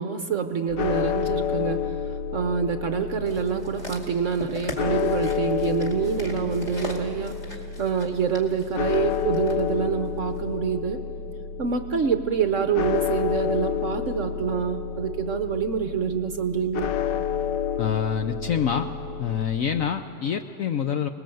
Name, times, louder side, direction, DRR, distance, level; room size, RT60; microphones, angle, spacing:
voice 1, 0.0-2.0 2.3-11.0 11.6-16.9, right 6 dB, 55° right, 7 dB, 0.9 m, -26 dB
sound 1, 0.7-19.5, left 8 dB, 75° left, 1.4 m, -30 dB
sound 2, 3.3-9.6 10.4-10.5, left 2 dB, 25° left, 2.5 m, -39 dB
voice 2, 17.8-18.9 19.2-21.1, left 8 dB, 60° left, 7 dB, 0.9 m, -26 dB
26.5 x 20.0 x 7.8 m, 2.6 s
omnidirectional pair, 2.0 m